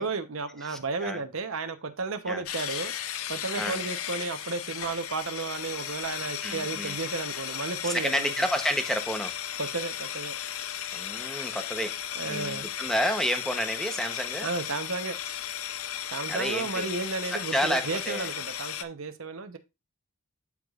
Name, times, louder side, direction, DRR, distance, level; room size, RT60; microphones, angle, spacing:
voice 1, 0.0-2.9 3.3-8.3 9.6-10.4 12.1-12.7 14.4-15.2 16.1-19.6, right 4 dB, 65° right, 0.9 m, -33 dB
voice 2, 0.6-1.2 2.3-2.4 3.6-3.8 6.4-7.0 7.9-9.3 10.9-11.9 12.2-14.5 16.3-16.9 17.3-18.3, equal, ahead, 0.8 m, -30 dB
sound 1, 2.5-18.8, left 10 dB, 75° left, 0.6 m, -35 dB
12.0 x 4.8 x 2.4 m
head